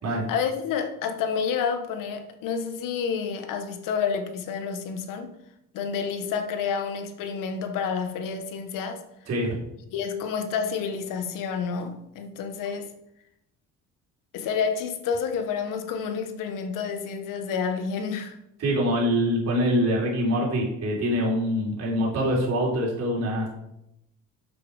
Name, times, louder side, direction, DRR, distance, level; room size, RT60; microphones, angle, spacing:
voice 1, 0.1-5.3 5.7-9.0 9.9-12.9 14.3-18.4, left 6 dB, 75° left, 1.2 m, -29 dB
voice 2, 18.6-23.5, equal, 50° right, 3.8 m, -24 dB
7.7 x 7.1 x 4.8 m
cardioid pair, 105°, 33 cm